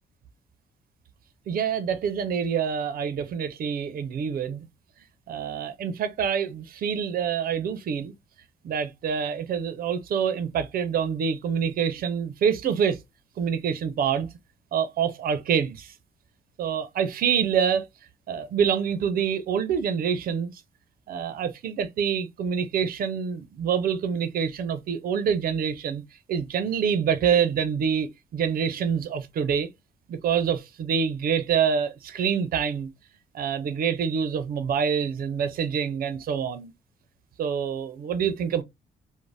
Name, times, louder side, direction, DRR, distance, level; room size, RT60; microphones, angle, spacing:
voice 1, 1.5-4.7 5.3-8.1 8.6-13.0 13.4-14.3 14.7-15.9 16.6-17.8 18.3-20.5 21.1-26.0 26.3-29.7 30.1-32.9 33.3-36.7 37.4-38.6, right 7 dB, 60° right, 0.5 m, -26 dB
2.6 x 2.0 x 3.2 m
cardioid pair, 75°, 17 cm